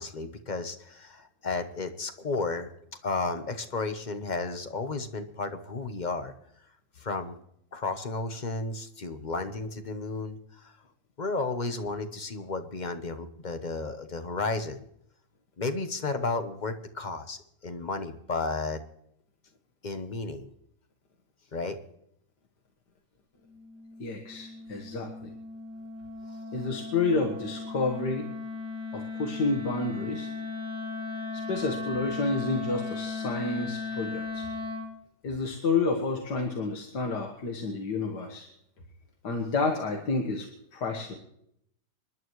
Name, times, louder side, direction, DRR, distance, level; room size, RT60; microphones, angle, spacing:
voice 1, 0.0-2.7 3.0-6.3 7.0-7.4 7.7-10.7 11.2-14.8 15.6-18.8 19.8-20.5 21.5-21.8, left 3 dB, 35° left, 8 dB, 0.9 m, -33 dB
Wind instrument woodwind instrument, 23.5-35.0, left 4 dB, 10° right, 2.0 m, -37 dB
voice 2, 24.0-25.3 26.5-28.3 28.9-30.3 31.3-34.5 35.2-38.5 39.2-40.5 40.7-41.1, left 3 dB, 80° left, 2 dB, 2.1 m, -30 dB
27.0 x 11.5 x 3.1 m, 0.74 s
omnidirectional pair, 1.8 m